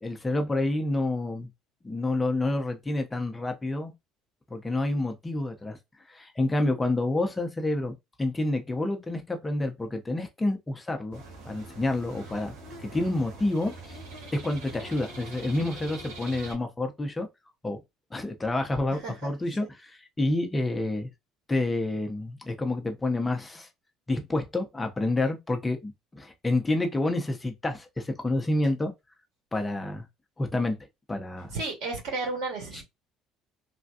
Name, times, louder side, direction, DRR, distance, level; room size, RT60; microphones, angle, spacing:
voice 1, 0.0-1.5 1.8-3.9 4.5-5.8 6.1-14.0 14.3-17.3 17.6-17.8 18.1-21.1 21.5-23.7 24.1-28.9 29.5-30.1 30.4-30.7 31.1-31.5 32.7-32.8, left 2 dB, 15° left, 0.6 m, -28 dB
sound 1, 11.1-16.5, right 2 dB, 85° right, 1.4 m, -43 dB
voice 2, 18.9-19.3 31.5-32.8, right 3 dB, 70° right, 2.1 m, -33 dB
3.3 x 2.2 x 2.6 m
supercardioid pair, 105°, 0 cm